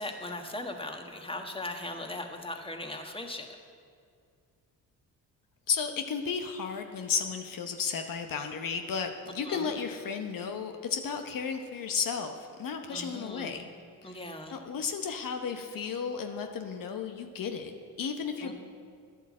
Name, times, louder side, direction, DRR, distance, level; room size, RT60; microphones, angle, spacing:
voice 1, 0.0-3.5 9.4-9.7 12.9-13.6 14.0-14.6 18.4-18.5, left 2 dB, 15° left, 4 dB, 1.5 m, -39 dB
voice 2, 5.7-13.7 14.0-18.5, left 6 dB, 65° left, 5 dB, 0.9 m, -34 dB
11.0 x 8.1 x 7.3 m, 2.1 s
cardioid pair, 70°, 36 cm